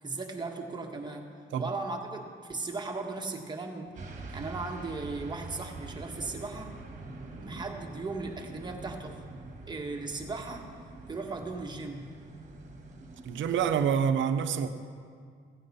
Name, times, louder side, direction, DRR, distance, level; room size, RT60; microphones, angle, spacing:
voice 1, 0.0-1.3 1.6-6.7 7.4-9.2 9.7-10.7 11.1-12.1, right 3 dB, 20° right, 1 dB, 1.5 m, -37 dB
sound 1, 3.9-13.9, right 3 dB, 40° right, 1.7 m, -45 dB
voice 2, 13.2-14.7, right 7 dB, 75° right, 9 dB, 0.8 m, -27 dB
16.0 x 9.0 x 4.3 m, 2.1 s
cardioid pair, 90°, 20 cm